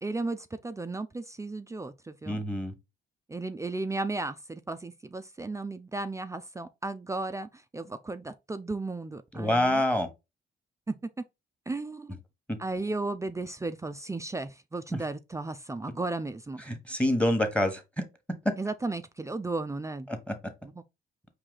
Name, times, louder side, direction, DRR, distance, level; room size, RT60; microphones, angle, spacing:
voice 1, 0.0-2.4 3.3-9.8 10.9-11.0 11.7-12.2 12.6-16.6 18.6-20.1 20.7-20.8, right 2 dB, 15° right, 0.4 m, -35 dB
voice 2, 2.2-2.7 9.3-10.1 14.9-15.0 16.7-17.8 20.1-20.3, left 1 dB, 5° left, 1.1 m, -26 dB
4.7 x 2.8 x 3.8 m
cardioid pair, 90°, 20 cm